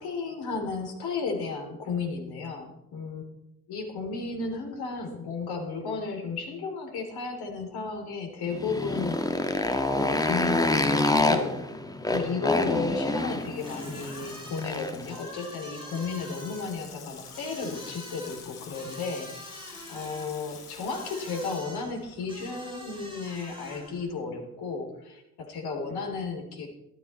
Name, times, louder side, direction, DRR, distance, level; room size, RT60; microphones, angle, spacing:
voice 1, 0.0-3.2 3.7-9.2 9.9-11.6 12.1-19.4 19.9-26.7, left 4 dB, 55° left, 4 dB, 3.1 m, -33 dB
Motorcycle, 8.5-15.1, left 2 dB, 10° left, 1.6 m, -27 dB
Water tap faucet / Sink (filling or washing), 13.1-22.9 23.2-23.3, left 6 dB, 85° left, 1.3 m, -48 dB
sound 1, 13.6-24.1, equal, 10° right, 5.7 m, -46 dB
14.0 x 12.0 x 4.3 m, 0.87 s
figure-of-eight pair, 55°, 45 cm